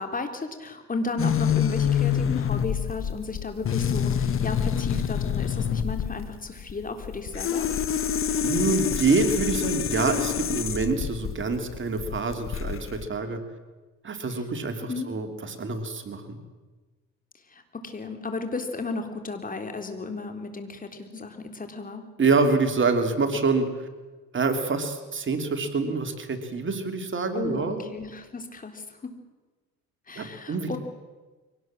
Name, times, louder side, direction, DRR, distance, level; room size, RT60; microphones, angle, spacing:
voice 1, 0.0-7.7 14.8-15.1 17.5-22.0 27.3-29.1 30.1-30.8, left 3 dB, 25° left, 6 dB, 3.7 m, -34 dB
sound 1, 1.2-13.0, left 8 dB, 40° left, 1.2 m, -27 dB
voice 2, 8.4-13.4 14.0-16.4 22.2-23.7 24.3-27.9 30.2-30.8, right 4 dB, 40° right, 6 dB, 3.1 m, -26 dB
24.0 x 18.5 x 7.6 m, 1.3 s
supercardioid pair, 85°, 32 cm